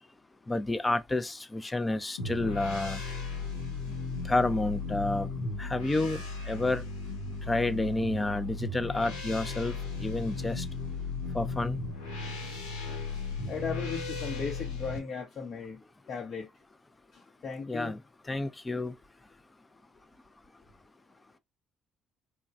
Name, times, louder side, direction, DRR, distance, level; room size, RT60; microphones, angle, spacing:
voice 1, 0.5-3.0 4.2-5.3 5.6-6.8 7.5-10.6 11.3-11.8 17.7-18.0 18.3-18.9, left 2 dB, 20° left, 0.5 m, -30 dB
sound 1, 2.2-15.0, left 3 dB, 85° left, 0.7 m, -36 dB
voice 2, 13.5-15.8 16.1-16.5 17.1-18.0, left 5 dB, 50° left, 0.8 m, -37 dB
3.0 x 2.3 x 2.5 m
hypercardioid pair, 50°, 0 cm